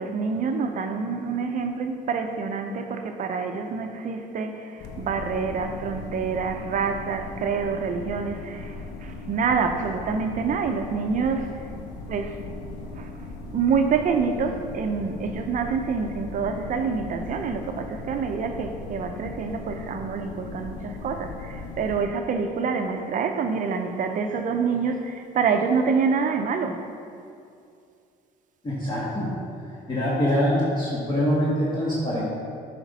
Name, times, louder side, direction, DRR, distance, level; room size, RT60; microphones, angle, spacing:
voice 1, 0.0-8.8 9.0-11.5 12.1-12.4 13.0-13.1 13.5-26.8, right 5 dB, 50° right, 6 dB, 0.6 m, -27 dB
sound 1, 4.8-22.1, left 3 dB, 75° left, 0.7 m, -38 dB
voice 2, 28.6-32.2, equal, 25° left, -8 dB, 1.4 m, -25 dB
7.9 x 5.1 x 4.1 m, 2.4 s
cardioid pair, 110°, 17 cm